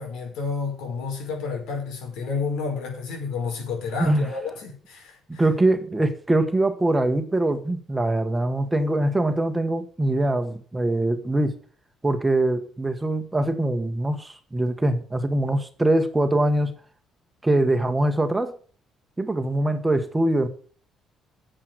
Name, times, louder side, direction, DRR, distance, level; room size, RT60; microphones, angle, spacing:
voice 1, 0.0-5.4, left 4 dB, 85° left, 5.5 m, -30 dB
voice 2, 5.4-11.6 12.0-16.8 17.4-18.6 19.2-20.5, right 1 dB, 10° right, 1.3 m, -23 dB
10.5 x 7.7 x 7.9 m
cardioid pair, 150°, 0 cm